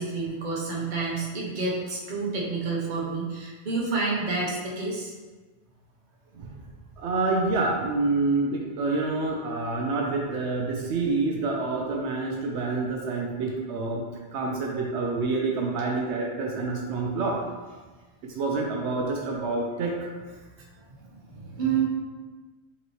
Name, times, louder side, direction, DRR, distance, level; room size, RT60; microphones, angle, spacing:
voice 1, 0.0-5.1 12.5-12.6 21.0-21.8, right 4 dB, 45° right, -4 dB, 1.0 m, -29 dB
voice 2, 7.0-14.0 14.3-17.4 18.2-20.1, right 3 dB, 80° right, -1 dB, 0.9 m, -27 dB
5.6 x 3.0 x 3.1 m, 1.3 s
omnidirectional pair, 1.1 m